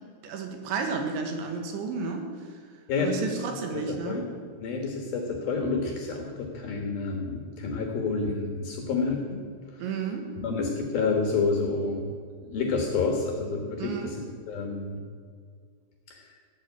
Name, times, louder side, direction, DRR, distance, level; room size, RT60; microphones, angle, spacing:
voice 1, 0.2-2.6 3.0-4.3 9.8-10.3 13.8-14.2, right 5 dB, 70° right, 4 dB, 3.6 m, -32 dB
voice 2, 2.9-3.4 3.7-4.3 4.6-9.4 9.7-9.8 10.4-12.1 12.4-14.2 14.5-15.0 16.1-16.3, left 4 dB, 65° left, 2 dB, 2.6 m, -29 dB
16.5 x 8.3 x 8.3 m, 2.1 s
omnidirectional pair, 5.8 m